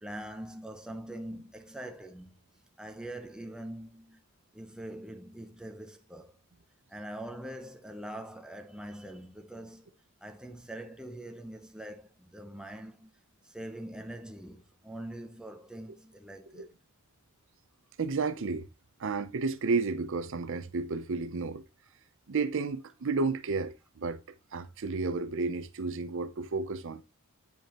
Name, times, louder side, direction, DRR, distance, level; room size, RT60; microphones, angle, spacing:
voice 1, 0.0-2.4 2.8-4.2 4.5-6.3 6.9-9.9 10.2-13.1 13.5-16.7, right 1 dB, 5° right, 0.7 m, -43 dB
voice 2, 18.0-18.7 19.0-21.6 22.3-24.2 24.5-27.0, right 4 dB, 60° right, 0.6 m, -32 dB
9.0 x 5.3 x 2.9 m
head